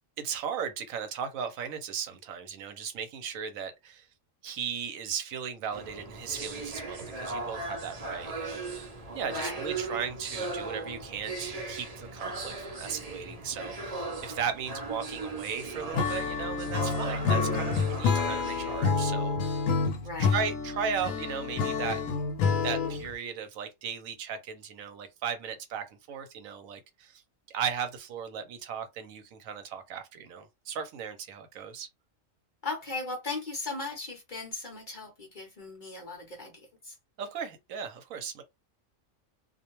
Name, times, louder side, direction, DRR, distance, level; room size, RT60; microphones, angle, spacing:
voice 1, 0.2-4.1 4.4-19.7 20.2-22.0 22.6-27.2 27.5-31.9 37.2-38.4, right 7 dB, 80° right, 1.0 m, -36 dB
sound 1, 5.7-18.8, right 2 dB, 40° right, 0.5 m, -38 dB
voice 2, 9.3-9.7 9.9-10.0 20.0-20.3 32.6-36.9, left 3 dB, 50° left, 0.7 m, -37 dB
Acoustic guitar / Strum, 15.9-23.1, left 5 dB, 80° left, 1.0 m, -28 dB
2.4 x 2.1 x 2.9 m
omnidirectional pair, 1.4 m